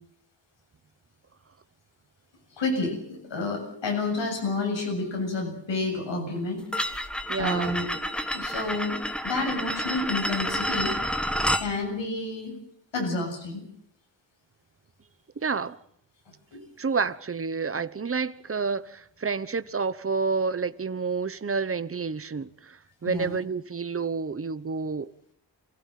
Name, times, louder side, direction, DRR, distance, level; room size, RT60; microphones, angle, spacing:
voice 1, 2.6-6.6 7.4-7.8 8.3-9.0 9.2-10.9 11.6-12.5 12.9-13.6 23.0-23.4, left 3 dB, 85° left, 7.5 m, -29 dB
sound 1, 6.7-11.7, equal, ahead, 1.7 m, -29 dB
voice 2, 7.3-7.8 15.4-15.8 16.8-25.3, right 5 dB, 30° right, 1.1 m, -29 dB
28.5 x 16.5 x 7.6 m
wide cardioid pair, 125°, 43 cm